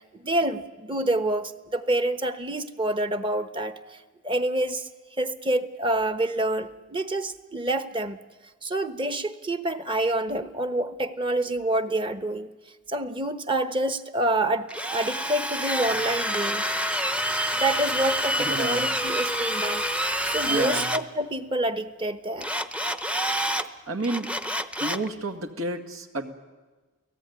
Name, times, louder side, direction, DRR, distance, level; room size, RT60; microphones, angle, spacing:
voice 1, 0.0-4.0 4.2-4.9 5.2-8.2 8.6-12.5 12.9-16.8 17.5-19.9 20.2-22.5, right 1 dB, 25° right, 10 dB, 1.0 m, -27 dB
Drill, 14.7-21.0 22.4-23.7 24.0-25.1, equal, 5° right, 0.7 m, -27 dB
voice 2, 18.4-18.9 20.4-20.9 23.9-24.3 24.8-26.3, right 2 dB, 80° right, 7 dB, 2.1 m, -30 dB
29.5 x 17.5 x 9.6 m, 1.3 s
head